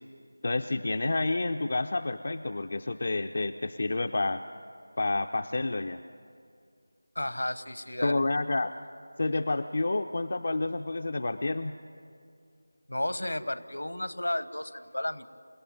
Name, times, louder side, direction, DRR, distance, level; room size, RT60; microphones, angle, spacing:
voice 1, 0.4-4.4 5.0-6.0 8.0-8.7 9.2-11.7, left 2 dB, 45° left, 7 dB, 0.5 m, -29 dB
voice 2, 7.1-8.2 12.9-15.3, left 1 dB, 65° left, 14 dB, 1.0 m, -33 dB
28.5 x 16.0 x 9.4 m, 2.4 s
figure-of-eight pair, 165°, 0 cm